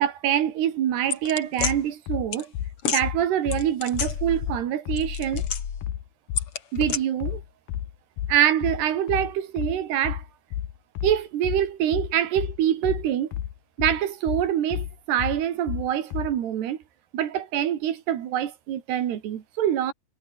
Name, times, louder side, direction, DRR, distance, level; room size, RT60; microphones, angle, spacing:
voice 1, 0.0-2.5 2.9-5.4 6.7-7.4 8.3-10.2 11.0-13.3 13.8-16.8 17.1-19.9, right 10 dB, 90° right, 4.2 m, -25 dB
sound 1, 1.1-1.7 2.3-2.4 2.8-3.0 3.5-4.6 4.9-5.9 6.4-7.0, left 7 dB, 40° left, 2.6 m, -29 dB
sound 2, 1.6-16.4, left 11 dB, 70° left, 3.4 m, -32 dB
omnidirectional pair, 4.6 m